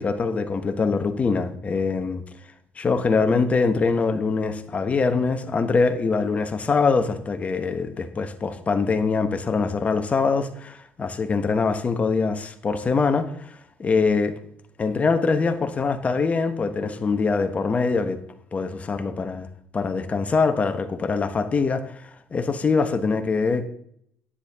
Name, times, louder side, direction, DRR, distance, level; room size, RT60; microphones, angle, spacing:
voice 1, 0.0-2.2 2.8-14.3 14.8-18.2 18.5-19.5 19.7-23.6, left 4 dB, 30° left, 8 dB, 1.1 m, -23 dB
10.0 x 9.9 x 3.6 m, 0.70 s
cardioid pair, 100°, 5 cm